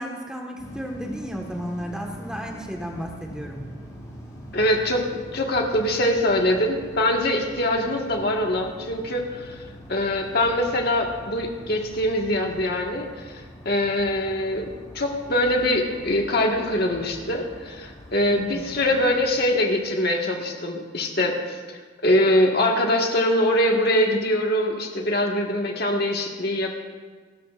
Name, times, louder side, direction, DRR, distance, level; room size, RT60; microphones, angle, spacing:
voice 1, 0.0-3.7 18.3-18.7, equal, 5° right, 0 dB, 1.5 m, -33 dB
sound 1, 0.6-20.1, equal, 20° left, 5.1 m, -43 dB
voice 2, 4.5-9.6 9.9-14.7 14.9-26.7, left 1 dB, 55° left, 1 dB, 1.7 m, -23 dB
28.5 x 13.0 x 2.5 m, 1.4 s
head